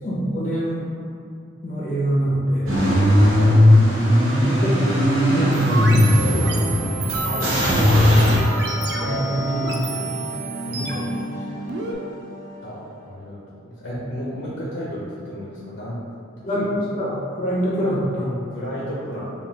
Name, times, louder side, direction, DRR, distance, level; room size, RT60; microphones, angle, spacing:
voice 1, 0.0-0.9 1.6-2.8 4.2-4.9 5.3-6.8 7.4-8.1 8.9-10.1 16.4-18.4, equal, 35° left, -6 dB, 0.6 m, -25 dB
Car / Engine starting / Idling, 2.7-8.4, left 1 dB, 80° right, 0.9 m, -17 dB
sound 1, 5.5-11.9, right 3 dB, 55° right, 0.4 m, -29 dB
sound 2, 6.2-13.1, equal, 5° left, 0.8 m, -33 dB
voice 2, 10.7-11.2 12.6-12.8 13.1-13.4 13.6-16.0 18.5-19.3, equal, 75° left, -7 dB, 0.7 m, -32 dB
5.1 x 2.4 x 2.8 m, 2.5 s
head